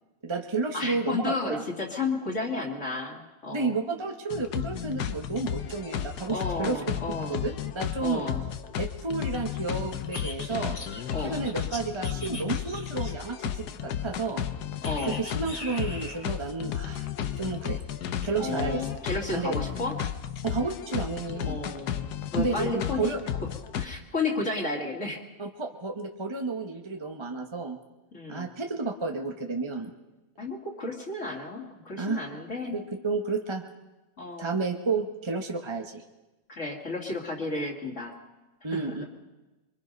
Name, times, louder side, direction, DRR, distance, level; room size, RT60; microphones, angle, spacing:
voice 1, 0.2-1.6 3.5-6.8 7.3-8.2 8.8-10.8 11.2-14.5 15.1-17.1 17.4-17.8 18.2-18.8 19.3-19.5 20.4-21.6 22.4-23.2 25.4-27.8 28.3-29.9 32.0-32.2 32.7-33.6 34.4-36.0 38.6-39.0, right 4 dB, 20° right, 2 dB, 0.8 m, -31 dB
voice 2, 0.7-3.8 6.3-7.4 8.0-8.4 11.1-11.4 14.8-15.2 18.4-20.0 21.4-23.1 23.8-25.2 28.1-28.5 30.4-32.8 34.2-34.6 36.5-38.1 38.7-39.1, left 3 dB, 35° left, -1 dB, 2.7 m, -32 dB
sound 1, 4.3-23.9, left 9 dB, 60° left, 1.2 m, -33 dB
sound 2, 10.1-13.4 14.8-16.3, left 2 dB, 20° left, 1.8 m, -41 dB
24.0 x 23.5 x 5.3 m, 1.1 s
omnidirectional pair, 2.2 m